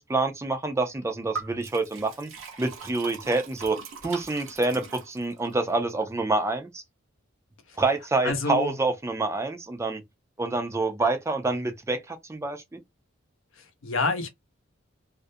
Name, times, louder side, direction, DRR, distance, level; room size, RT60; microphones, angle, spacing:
voice 1, 0.0-2.3 2.6-6.8 7.8-10.0 10.4-12.8, right 3 dB, 15° right, 0.4 m, -27 dB
Liquid, 1.3-5.5, right 5 dB, 75° right, 0.8 m, -41 dB
voice 2, 8.2-8.8 13.6-14.3, left 3 dB, 70° left, 0.7 m, -28 dB
2.4 x 2.0 x 2.6 m
head